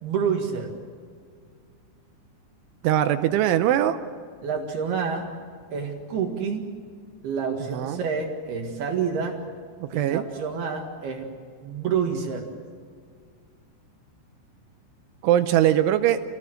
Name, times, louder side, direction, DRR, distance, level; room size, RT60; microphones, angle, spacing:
voice 1, 0.0-0.7 4.4-5.3 5.7-6.7 7.2-9.4 9.9-11.3 11.6-12.5, right 6 dB, 60° right, 2 dB, 3.5 m, -28 dB
voice 2, 2.8-4.0 7.7-8.0 9.8-10.2 15.2-16.2, right 12 dB, 80° right, 9 dB, 3.1 m, -21 dB
28.5 x 18.0 x 7.8 m, 2.1 s
omnidirectional pair, 5.6 m